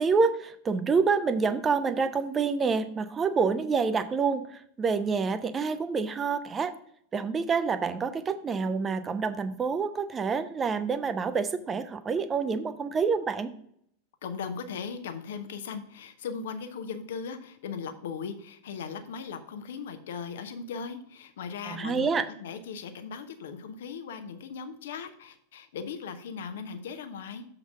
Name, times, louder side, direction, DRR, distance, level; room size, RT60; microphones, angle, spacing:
voice 1, 0.0-6.7 7.1-13.5 21.7-22.3, right 5 dB, 20° right, 11 dB, 0.6 m, -27 dB
voice 2, 14.2-27.5, left 6 dB, 60° left, 9 dB, 0.8 m, -38 dB
7.1 x 3.9 x 6.0 m, 0.67 s
figure-of-eight pair, 90°, 0 cm